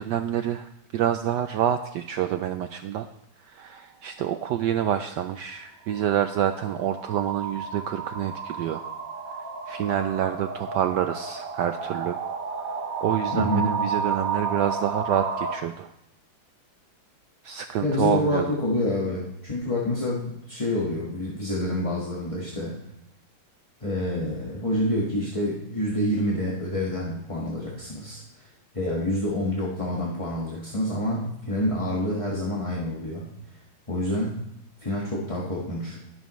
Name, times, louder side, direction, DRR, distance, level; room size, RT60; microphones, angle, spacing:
voice 1, 0.0-3.1 3.4-8.8 9.7-12.2 13.0-15.9 17.4-18.5, right 10 dB, 75° right, 8 dB, 1.0 m, -27 dB
sound 1, 3.6-3.8 5.8-15.6, right 5 dB, 50° right, 1.3 m, -32 dB
voice 2, 13.3-13.7 17.8-22.8 23.8-28.4 28.7-33.3 33.9-34.4 34.8-36.0, left 1 dB, 20° left, -4 dB, 1.3 m, -27 dB
20.5 x 7.2 x 3.1 m, 0.82 s
omnidirectional pair, 2.3 m